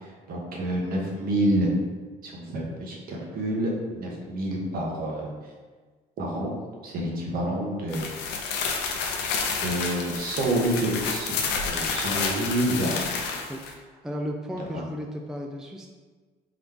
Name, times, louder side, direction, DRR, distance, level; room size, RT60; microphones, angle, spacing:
voice 1, 0.0-1.7 2.2-5.3 6.2-6.5 6.8-8.1 9.6-11.4 11.6-13.1 14.7-14.8, right 1 dB, 60° right, -1 dB, 1.1 m, -28 dB
sound 1, 7.9-13.7, left 5 dB, 90° left, 0.6 m, -29 dB
voice 2, 13.5-15.9, equal, 5° right, 1 dB, 0.3 m, -35 dB
3.9 x 3.0 x 3.4 m, 1.4 s
cardioid pair, 110°, 17 cm